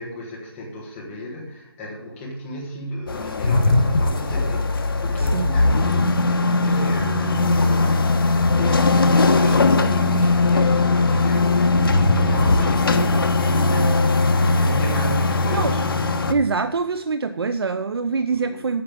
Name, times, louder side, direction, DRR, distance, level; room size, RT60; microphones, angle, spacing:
voice 1, 0.0-15.8 18.3-18.6, equal, 10° left, -3 dB, 1.2 m, -34 dB
sound 1, 3.1-16.3, left 3 dB, 70° left, 1.2 m, -19 dB
voice 2, 16.3-18.8, right 4 dB, 85° right, 11 dB, 0.6 m, -24 dB
8.7 x 6.6 x 7.4 m, 0.87 s
hypercardioid pair, 175°, 13 cm